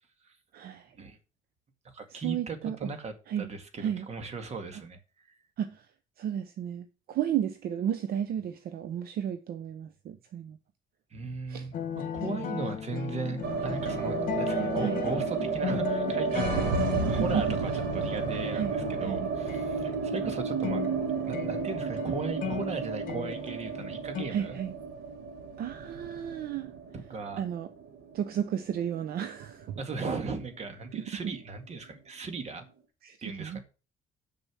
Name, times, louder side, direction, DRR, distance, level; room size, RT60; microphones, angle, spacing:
voice 1, 0.5-0.9 2.1-2.9 3.3-3.5 3.8-4.1 4.7-4.8 5.6-5.9 6.2-10.6 11.5-11.7 12.3-12.5 14.5-15.0 16.8-17.6 18.5-18.7 19.0-19.3 24.3-24.7 25.6-26.7 27.4-27.7 28.1-29.8 30.9-31.3 33.0-33.6, right 9 dB, 65° right, 0.8 m, -33 dB
voice 2, 1.8-5.0 5.3-5.4 11.1-16.7 17.1-20.8 21.3-24.6 27.1-27.4 29.8-32.6 33.2-33.6, right 4 dB, 40° right, 2.0 m, -37 dB
sound 1, 11.7-24.2, left 9 dB, 55° left, 1.4 m, -37 dB
sound 2, 13.4-29.5 29.8-29.9 30.2-30.9, right 5 dB, 85° right, 1.6 m, -32 dB
6.9 x 6.7 x 6.2 m
cardioid pair, 110°, 17 cm